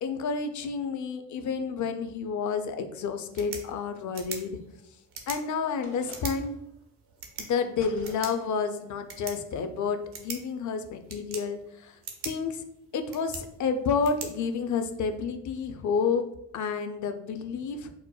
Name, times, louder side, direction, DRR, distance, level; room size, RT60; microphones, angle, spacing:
voice 1, 0.0-4.6 5.3-6.5 7.4-11.9 12.2-12.6 12.9-16.2 16.5-17.9, left 5 dB, 50° left, 8 dB, 0.5 m, -30 dB
sound 1, 3.2-15.2, right 5 dB, 75° right, 0.7 m, -44 dB
sound 2, 5.8-6.6 7.8-8.5, left 3 dB, 70° left, 1.1 m, -49 dB
4.4 x 2.1 x 2.2 m, 0.80 s
hypercardioid pair, 50°, 39 cm